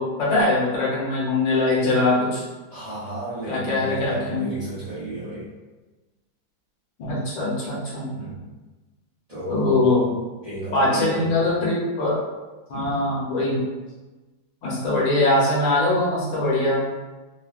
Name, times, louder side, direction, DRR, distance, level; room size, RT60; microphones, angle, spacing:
voice 1, 0.0-2.4 3.5-4.5 7.0-8.1 9.5-10.1 10.7-12.2 12.7-13.6 14.6-16.8, left 2 dB, 65° left, -6 dB, 1.6 m, -22 dB
voice 2, 2.7-5.5 8.1-8.5 9.3-10.0 10.4-11.5 12.7-13.0, right 1 dB, 55° right, -11 dB, 0.4 m, -32 dB
3.7 x 2.2 x 2.4 m, 1.2 s
omnidirectional pair, 2.2 m